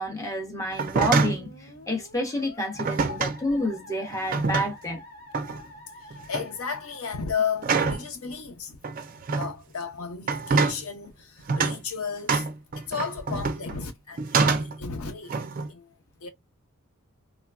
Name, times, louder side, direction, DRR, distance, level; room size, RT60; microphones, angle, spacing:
voice 1, 0.0-5.0, equal, 15° left, 0.8 m, -29 dB
sound 1, 0.7-1.5 2.8-3.4 4.1-4.9 5.3-5.6 6.1-6.5 7.6-8.1 8.8-9.5 10.2-10.8 11.5-11.8 12.3-13.8 14.2-14.8 15.3-15.7, right 4 dB, 40° right, 0.4 m, -25 dB
Musical instrument, 1.0-7.9, left 1 dB, 60° left, 1.6 m, -48 dB
voice 2, 3.0-3.3 6.3-8.8 9.4-12.4 12.9-15.3 15.7-15.9 16.2-16.3, left 5 dB, 80° left, 0.7 m, -33 dB
3.2 x 2.2 x 2.3 m
head